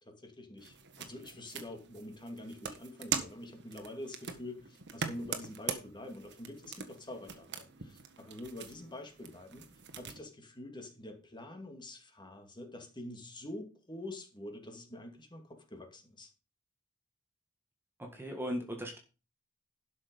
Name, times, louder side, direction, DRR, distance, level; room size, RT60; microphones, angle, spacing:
voice 1, 0.0-9.7 9.9-16.3, left 1 dB, 20° left, 4 dB, 2.4 m, -46 dB
sound 1, 0.6-10.2, right 6 dB, 55° right, 1.6 m, -42 dB
voice 2, 18.0-19.0, equal, 10° right, 2 dB, 1.7 m, -37 dB
12.0 x 6.4 x 5.3 m, 0.33 s
head